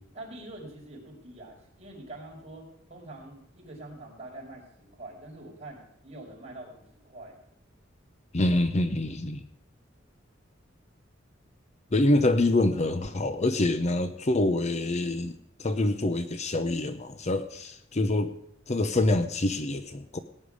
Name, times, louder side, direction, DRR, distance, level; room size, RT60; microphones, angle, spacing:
voice 1, 0.1-7.4, right 2 dB, 35° right, -2 dB, 5.1 m, -45 dB
voice 2, 8.3-9.4 11.9-18.3 18.7-20.2, left 2 dB, 35° left, 10 dB, 0.8 m, -26 dB
18.0 x 10.0 x 4.9 m, 0.77 s
head